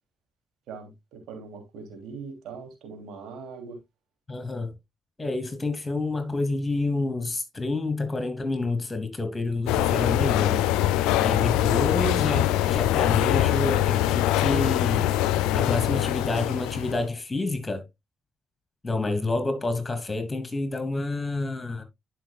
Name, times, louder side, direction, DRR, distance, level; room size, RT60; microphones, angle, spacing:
voice 1, 0.7-3.8, right 5 dB, 70° right, 2.8 m, -41 dB
voice 2, 4.3-4.7 5.2-10.7 11.2-15.1 15.5-17.8 18.8-21.8, left 2 dB, 25° left, 3.0 m, -28 dB
sound 1, 9.7-17.0, left 13 dB, 80° left, 0.5 m, -23 dB
11.5 x 5.9 x 2.3 m
hypercardioid pair, 50°, 0 cm